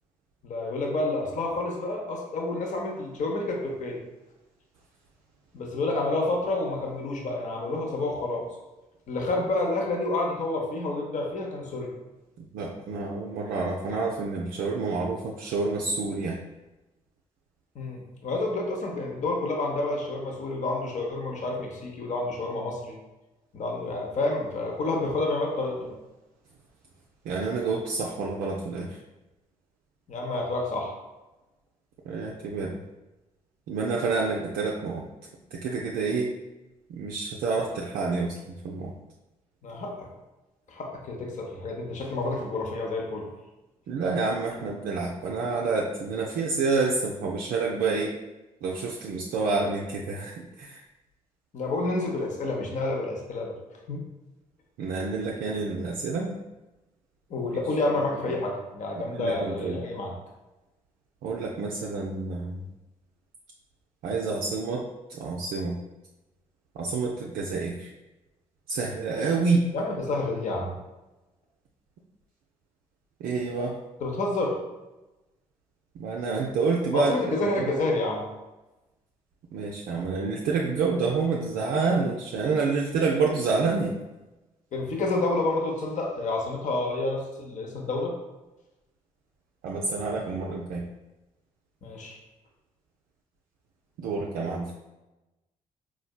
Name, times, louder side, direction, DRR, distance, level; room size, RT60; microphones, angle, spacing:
voice 1, 0.4-4.0 5.5-8.4 9.1-11.9 17.7-22.9 23.5-25.9 30.1-30.9 39.6-40.1 40.7-43.3 51.5-53.5 53.9-54.0 57.3-60.1 69.7-70.7 74.0-74.6 76.9-78.3 84.7-88.1 91.8-92.2, left 2 dB, 45° left, 0 dB, 0.7 m, -29 dB
voice 2, 12.4-16.4 27.3-29.0 32.1-32.8 33.7-35.0 35.5-36.3 36.9-38.9 43.9-48.1 48.6-50.8 54.8-56.4 57.5-57.6 57.9-58.1 59.0-59.8 61.2-62.7 64.0-65.8 66.8-67.9 68.7-69.7 73.2-73.8 75.9-77.7 79.5-84.0 89.6-90.8 94.0-94.7, right 4 dB, 55° right, -2 dB, 0.4 m, -28 dB
4.2 x 2.2 x 2.2 m, 1.0 s
figure-of-eight pair, 40°, 18 cm